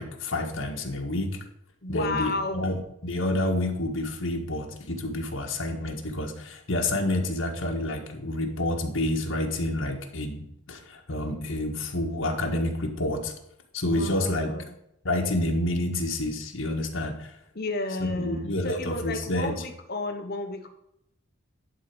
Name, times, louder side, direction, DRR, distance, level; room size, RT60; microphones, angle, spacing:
voice 1, 0.0-1.4 1.9-13.3 13.7-14.5 15.0-17.3 18.1-19.5, left 1 dB, 75° left, 2 dB, 1.5 m, -29 dB
voice 2, 1.8-2.7 13.9-14.7 17.5-20.7, left 2 dB, 50° left, 5 dB, 1.2 m, -32 dB
11.0 x 4.1 x 6.1 m, 0.78 s
head